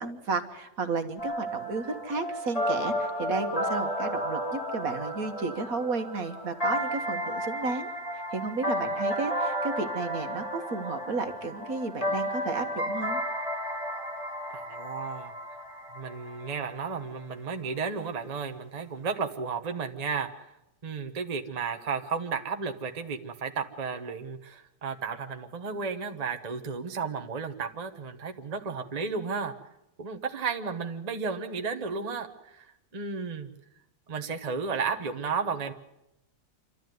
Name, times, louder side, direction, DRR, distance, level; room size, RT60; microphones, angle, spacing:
voice 1, 0.0-13.2, right 3 dB, 65° right, 6 dB, 1.8 m, -33 dB
sound 1, 1.2-16.9, equal, 20° left, 6.5 m, -33 dB
voice 2, 14.5-15.4 15.9-20.5 20.8-29.5 30.0-33.5 34.1-35.7, right 5 dB, 30° right, 6 dB, 1.1 m, -33 dB
27.0 x 12.5 x 9.4 m, 0.89 s
omnidirectional pair, 1.6 m